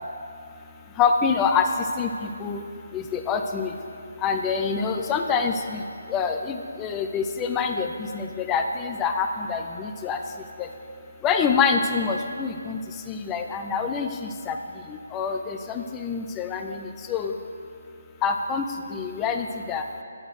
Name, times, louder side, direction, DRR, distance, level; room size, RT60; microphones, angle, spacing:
voice 1, 1.0-1.7 2.0-2.1 2.4-2.6 2.9-3.7 4.2-5.8 6.1-10.2 10.6-10.7 11.2-12.8 13.1-14.6 14.9-17.3 18.2-18.6 18.9-19.8, left 6 dB, 10° left, 5 dB, 0.4 m, -26 dB
11.0 x 8.5 x 6.4 m, 2.4 s
hypercardioid pair, 175°, 0 cm